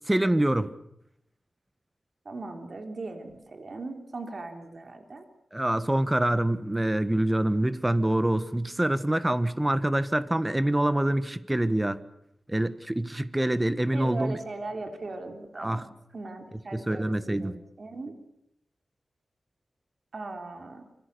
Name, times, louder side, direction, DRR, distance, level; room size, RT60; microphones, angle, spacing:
voice 1, 0.1-0.7 5.5-12.0 12.5-14.4 15.6-15.9 16.7-17.6, right 1 dB, 15° right, 1.4 m, -25 dB
voice 2, 2.3-5.3 13.9-15.9 16.1-18.2 20.1-20.8, right 3 dB, 50° right, 3.5 m, -38 dB
26.5 x 26.0 x 6.9 m
wide cardioid pair, 100°, 0 cm